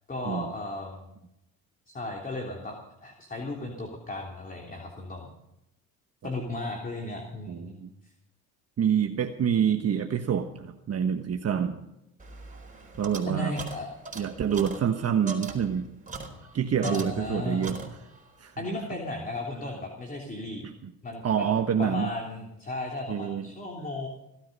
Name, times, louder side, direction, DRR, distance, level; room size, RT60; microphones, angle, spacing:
voice 1, 0.1-1.1 1.9-5.3 6.2-7.8 8.0-8.1 13.3-13.9 16.8-17.7 18.6-20.6 21.0-21.5 21.8-24.1, left 2 dB, 20° left, 1 dB, 3.3 m, -35 dB
voice 2, 7.5-7.9 8.8-11.8 13.0-13.5 14.1-15.9 16.5-17.8 18.4-18.5 20.6-20.9 21.2-22.1 23.1-23.4, right 8 dB, 40° right, 5 dB, 1.3 m, -27 dB
sound 1, 12.2-17.4 17.6-18.3, right 3 dB, 20° right, 4.4 m, -41 dB
17.5 x 13.0 x 5.4 m, 0.85 s
supercardioid pair, 90°, 37 cm